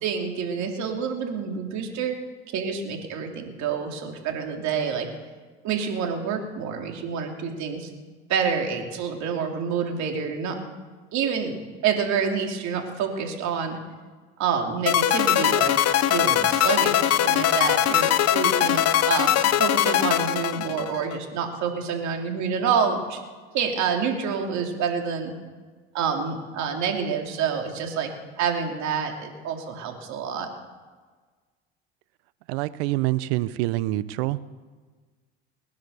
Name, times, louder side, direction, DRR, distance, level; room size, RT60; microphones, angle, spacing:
voice 1, 0.0-2.2 2.5-5.1 5.6-7.9 8.3-10.6 11.1-11.6 11.8-13.8 14.4-15.7 16.0-23.2 23.5-25.3 25.9-28.1 28.4-30.5, right 6 dB, 60° right, 3 dB, 3.1 m, -27 dB
sound 1, 14.9-21.2, left 11 dB, 50° left, 0.8 m, -21 dB
voice 2, 32.5-34.4, right 17 dB, 75° right, 17 dB, 0.8 m, -26 dB
20.0 x 10.5 x 6.7 m, 1.4 s
hypercardioid pair, 80°, 32 cm